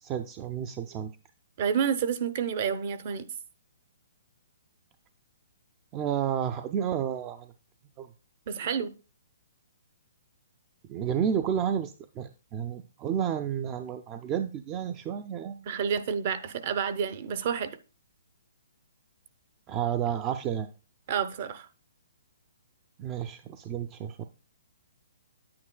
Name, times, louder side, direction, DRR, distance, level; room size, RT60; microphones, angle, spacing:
voice 1, 0.0-1.1 5.9-7.5 8.0-8.1 10.9-15.7 19.7-20.7 23.0-24.2, right 9 dB, 25° right, 0.4 m, -31 dB
voice 2, 1.6-3.2 8.5-8.9 15.7-17.7 21.1-21.7, right 7 dB, 45° right, 0.8 m, -29 dB
9.4 x 8.6 x 2.2 m
hypercardioid pair, 155°, 0 cm